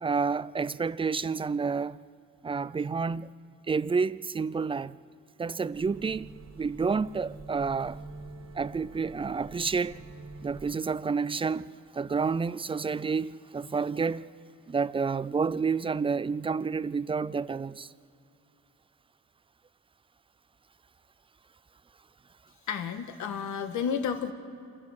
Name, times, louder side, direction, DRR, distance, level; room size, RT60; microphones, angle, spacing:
voice 1, 0.0-2.0 2.4-3.3 3.7-5.0 5.4-8.0 8.5-10.0 10.4-14.3 14.7-17.9, right 5 dB, 20° right, 0.4 m, -29 dB
sound 1, 5.7-10.8, right 3 dB, 55° right, 1.5 m, -46 dB
voice 2, 22.7-24.3, left 7 dB, 75° left, 1.6 m, -31 dB
27.5 x 15.0 x 6.5 m
cardioid pair, 90°, 30 cm